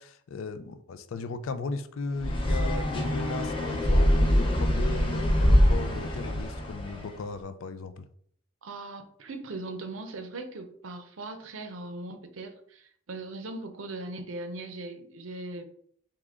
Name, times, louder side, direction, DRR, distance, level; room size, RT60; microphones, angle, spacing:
voice 1, 0.0-8.1, left 4 dB, 75° left, 11 dB, 0.4 m, -37 dB
sound 1, 2.2-7.1, equal, 25° left, 0.7 m, -24 dB
voice 2, 8.6-15.6, right 2 dB, 80° right, 7 dB, 0.6 m, -39 dB
3.6 x 3.0 x 3.6 m, 0.63 s
head